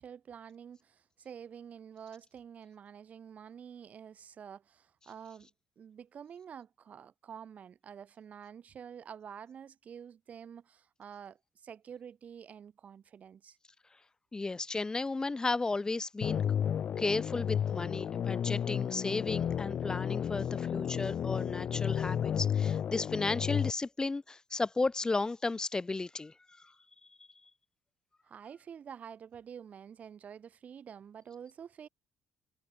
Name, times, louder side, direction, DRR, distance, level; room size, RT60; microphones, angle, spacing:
voice 1, 0.0-5.5 5.8-13.6 28.2-31.9, right 8 dB, 50° right, 6.9 m, -48 dB
voice 2, 14.3-16.4 17.0-26.7, left 3 dB, 25° left, 1.7 m, -34 dB
sound 1, 16.2-23.7, left 8 dB, 55° left, 4.0 m, -32 dB
hypercardioid pair, 55°, 3 cm